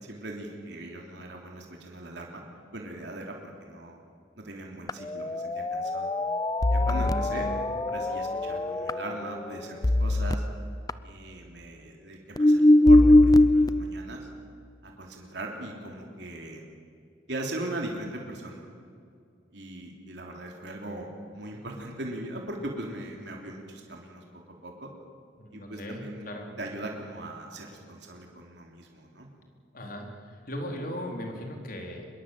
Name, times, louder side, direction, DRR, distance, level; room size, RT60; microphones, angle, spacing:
voice 1, 0.0-2.4 2.7-4.0 4.4-6.1 6.7-7.5 7.9-10.4 11.0-14.3 14.8-16.6 17.3-18.6 19.5-24.2 24.6-24.9 25.5-26.3 26.6-29.3, right 1 dB, 65° right, 0 dB, 3.4 m, -39 dB
sound 1, 4.9-9.5 9.8-10.3 10.9-11.0 12.4-13.7, left 1 dB, 20° left, 0.5 m, -21 dB
voice 2, 6.9-7.5 25.4-26.5 29.7-30.1 30.5-32.1, equal, 50° left, 2 dB, 4.2 m, -37 dB
24.5 x 21.5 x 7.7 m, 2.4 s
head